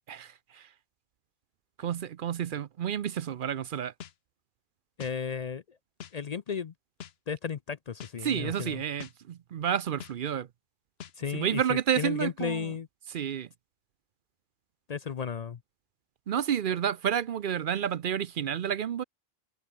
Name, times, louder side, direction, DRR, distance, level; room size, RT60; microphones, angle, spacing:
voice 1, 0.1-0.7 1.8-3.9 8.2-10.5 11.3-12.7 13.1-13.5 16.3-19.0, right 9 dB, 60° right, 0.7 m, -30 dB
sound 1, 4.0-4.1 5.0-5.1 6.0-6.1 7.0-7.1 8.0-8.1 9.0-9.1 10.0-10.1 11.0-11.1, left 9 dB, 80° left, 1.1 m, -43 dB
voice 2, 5.0-5.8 6.1-6.7 7.3-8.8 11.2-12.9 14.9-15.6, left 7 dB, 50° left, 0.6 m, -34 dB
omnidirectional pair, 1.0 m